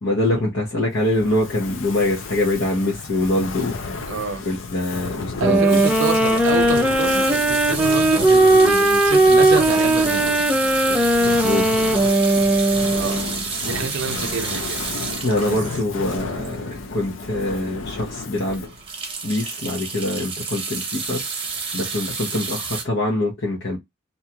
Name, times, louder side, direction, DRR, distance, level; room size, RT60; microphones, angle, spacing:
voice 1, 0.0-3.7 4.5-5.8 11.2-11.7 15.2-18.6 19.2-21.2 21.7-23.8, left 1 dB, 65° left, 0.9 m, -24 dB
Fire, 0.9-18.9, left 4 dB, 80° left, 0.6 m, -33 dB
voice 2, 4.1-4.4 5.4-10.3 13.0-13.2 13.7-14.8 15.4-15.6, right 5 dB, 75° right, 0.4 m, -28 dB
sound 1, 5.4-13.4, right 2 dB, 5° right, 0.5 m, -17 dB
sound 2, 5.7-17.0 17.5-17.6 17.8-18.0 18.3-22.8, right 5 dB, 25° right, 0.9 m, -30 dB
2.7 x 2.3 x 2.8 m
head